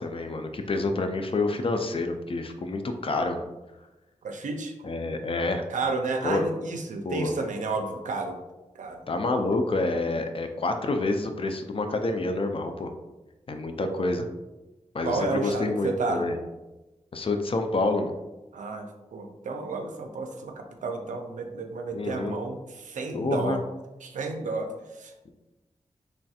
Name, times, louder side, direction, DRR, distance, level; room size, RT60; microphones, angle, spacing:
voice 1, 0.0-3.4 4.8-5.6 6.2-6.5 7.0-7.3 9.1-12.9 13.5-14.3 14.9-16.3 17.1-18.1 21.9-22.3 23.1-23.6 25.3-25.4, left 2 dB, 45° left, 6 dB, 0.4 m, -28 dB
voice 2, 4.2-4.7 5.7-8.4 8.7-9.0 13.8-14.0 15.0-16.2 18.5-18.9 19.1-23.6 24.0-25.1, right 3 dB, 85° right, 4 dB, 0.4 m, -31 dB
3.2 x 2.7 x 2.3 m, 1.1 s
cardioid pair, 45°, 13 cm